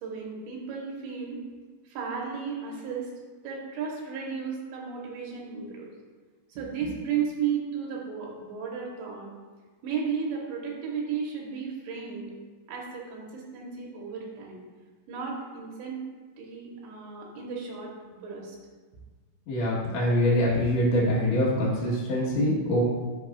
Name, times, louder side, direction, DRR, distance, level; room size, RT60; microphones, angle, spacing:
voice 1, 0.0-1.4 1.9-3.1 3.4-5.9 6.5-9.3 9.8-12.3 12.7-14.6 15.1-16.1 16.4-17.9 18.2-18.6, right 6 dB, 85° right, -2 dB, 3.3 m, -34 dB
voice 2, 19.5-22.8, left 1 dB, 70° left, -7 dB, 1.6 m, -24 dB
8.5 x 5.5 x 2.4 m, 1.4 s
omnidirectional pair, 5.0 m